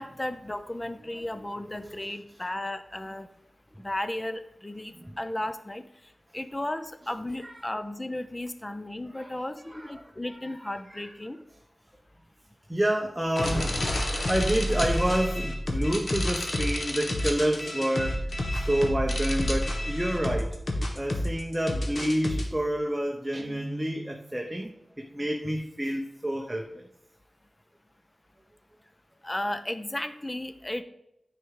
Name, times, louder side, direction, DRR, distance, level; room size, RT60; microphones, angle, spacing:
voice 1, 0.0-3.3 3.8-5.8 6.3-11.4 29.2-30.8, left 1 dB, 20° left, 10 dB, 0.7 m, -34 dB
voice 2, 12.7-18.2 18.5-20.5 20.9-24.7 25.0-26.7, right 1 dB, 10° right, 2 dB, 0.9 m, -28 dB
sound 1, 13.4-22.4, left 1 dB, 55° left, 1.6 m, -29 dB
Guitar, 23.3-24.5, right 2 dB, 55° right, 0.5 m, -40 dB
9.9 x 5.0 x 4.7 m, 0.84 s
wide cardioid pair, 85°, 0 cm